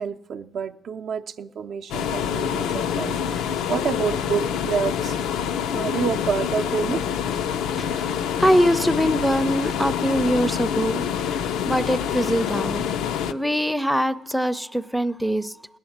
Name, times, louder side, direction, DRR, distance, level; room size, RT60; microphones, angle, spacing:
voice 1, 0.0-5.2 5.7-7.0, right 6 dB, 65° right, 0.5 m, -28 dB
sound 1, 1.9-13.3, left 8 dB, 85° left, 0.4 m, -26 dB
voice 2, 7.9-12.8 13.3-15.5, equal, ahead, 0.4 m, -23 dB
18.5 x 8.7 x 7.2 m
cardioid pair, 90°, 0 cm